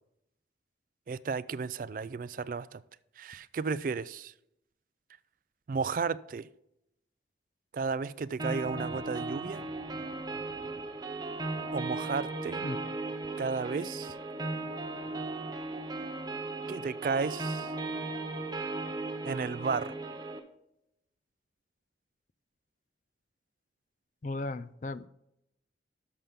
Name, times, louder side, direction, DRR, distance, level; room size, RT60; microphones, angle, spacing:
voice 1, 1.1-2.8 3.2-4.3 5.7-6.5 7.7-9.6 11.7-12.7 13.4-14.1 16.7-17.7 19.2-20.0, right 5 dB, 45° right, 0.3 m, -33 dB
sound 1, 8.4-20.4, right 2 dB, 20° right, 0.8 m, -36 dB
Thunder, 8.7-13.5 13.7-13.8 14.0-14.6 15.1-16.3, left 2 dB, 75° left, 0.7 m, -54 dB
voice 2, 24.2-25.1, left 2 dB, 40° left, 0.4 m, -36 dB
11.5 x 6.8 x 3.6 m
head